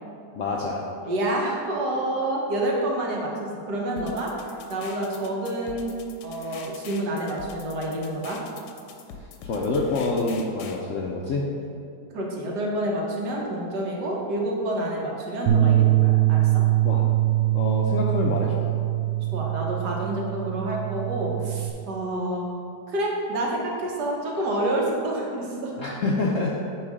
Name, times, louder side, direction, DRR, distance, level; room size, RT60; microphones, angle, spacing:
voice 1, 0.4-0.8 9.4-11.5 16.8-17.0 17.5-18.7 25.8-26.6, left 3 dB, 70° left, -2 dB, 0.7 m, -26 dB
voice 2, 1.0-3.3 3.7-4.3 4.7-6.0 6.2-8.4 12.1-16.5 19.3-22.5 22.9-25.9, right 1 dB, 70° right, -2 dB, 1.6 m, -28 dB
sound 1, 4.0-10.8, left 5 dB, 90° left, 1.3 m, -44 dB
Bass guitar, 15.5-21.7, right 14 dB, 85° right, 1.3 m, -22 dB
8.9 x 3.2 x 4.9 m, 2.7 s
omnidirectional pair, 1.9 m